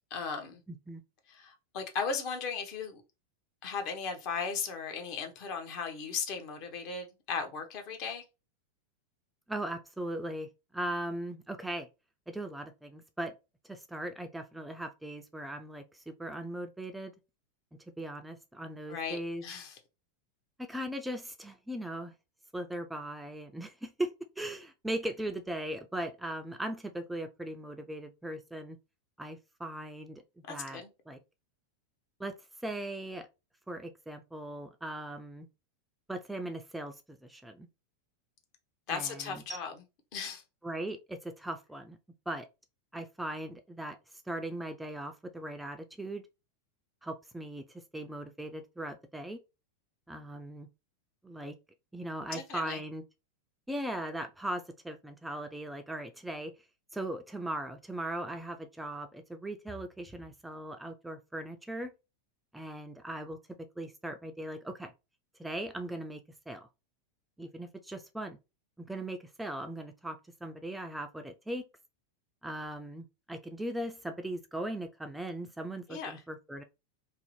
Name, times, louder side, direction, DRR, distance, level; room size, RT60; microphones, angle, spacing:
voice 1, 0.1-0.6 1.3-3.0 3.6-8.2 18.9-19.8 30.5-30.9 38.9-39.7 40.1-40.4 52.3-52.8 75.9-76.2, left 5 dB, 50° left, 0.7 m, -37 dB
voice 2, 0.7-1.0 9.5-10.5 10.7-11.9 12.3-13.3 13.7-17.1 18.0-19.4 20.6-22.1 22.5-28.8 29.2-30.2 30.5-31.2 32.2-32.3 32.6-33.3 33.7-35.5 36.1-37.7 38.9-39.4 40.6-42.0 42.3-42.5 42.9-44.0 44.3-46.2 47.0-47.7 47.9-49.4 50.1-50.7 51.2-51.5 51.9-53.0 53.7-56.5 56.9-61.9 62.5-63.4 63.8-64.9 65.4-66.2 66.5-66.7 67.4-68.4 68.9-71.6 72.4-76.6, right 1 dB, 5° right, 0.3 m, -39 dB
2.6 x 2.0 x 2.9 m
hypercardioid pair, 90°, 0 cm